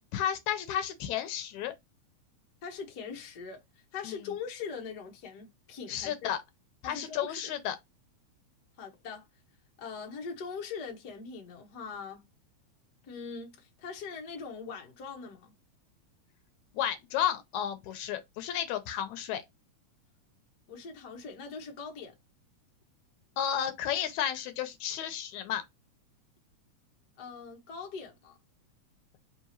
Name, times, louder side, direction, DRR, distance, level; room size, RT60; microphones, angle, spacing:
voice 1, 0.1-1.7 4.0-4.2 5.9-6.4 6.8-7.8 16.7-19.4 23.4-25.6, left 10 dB, 80° left, 2.1 m, -32 dB
voice 2, 2.6-3.6 3.9-6.3 6.8-7.5 8.8-9.2 9.8-12.2 13.0-15.5 20.7-22.1 27.2-28.4, left 5 dB, 60° left, 1.0 m, -41 dB
4.7 x 3.2 x 2.8 m
omnidirectional pair, 3.5 m